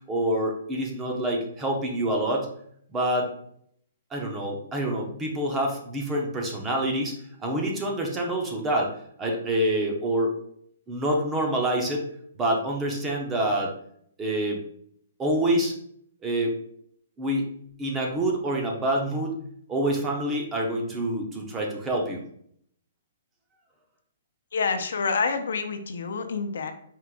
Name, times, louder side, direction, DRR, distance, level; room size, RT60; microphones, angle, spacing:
voice 1, 0.1-2.5 2.9-3.3 4.1-7.2 7.4-8.9 9.2-10.3 10.9-12.1 12.4-13.7 14.2-14.6 15.2-15.7 16.2-16.5 17.2-17.5 17.8-19.4 19.7-22.2, right 1 dB, 10° right, 0 dB, 0.6 m, -26 dB
voice 2, 24.5-26.7, left 4 dB, 70° left, 7 dB, 0.6 m, -27 dB
4.5 x 2.5 x 3.6 m, 0.65 s
hypercardioid pair, 170°, 0 cm